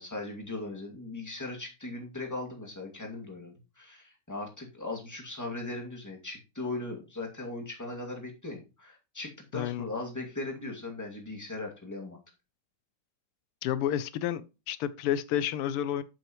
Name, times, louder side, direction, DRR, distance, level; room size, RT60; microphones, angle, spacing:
voice 1, 0.0-12.2, left 2 dB, 10° left, 2.1 m, -38 dB
voice 2, 9.5-9.8 13.6-16.0, left 10 dB, 85° left, 1.6 m, -30 dB
9.2 x 7.6 x 3.1 m
omnidirectional pair, 2.4 m